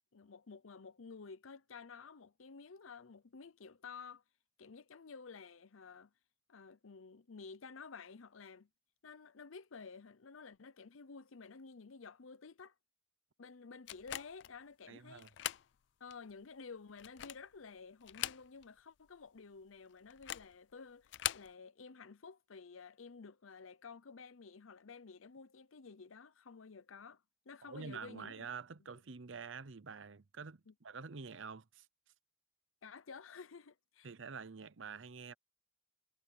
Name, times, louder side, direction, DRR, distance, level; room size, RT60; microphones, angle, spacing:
voice 1, 0.1-4.2 4.6-6.1 6.5-8.7 9.0-12.7 13.4-15.3 16.0-28.5 28.8-29.0 30.7-30.8 32.8-34.1, left 5 dB, 85° left, 0.7 m, -52 dB
sound 1, 13.9-14.5 15.2-15.7 16.1-16.2 16.9-17.5 18.0-18.8 19.1-19.2 20.1-20.5 21.0-21.5, left 13 dB, 60° left, 0.4 m, -41 dB
voice 2, 14.9-15.3 27.6-31.9 34.0-35.3, right 5 dB, 70° right, 0.8 m, -47 dB
head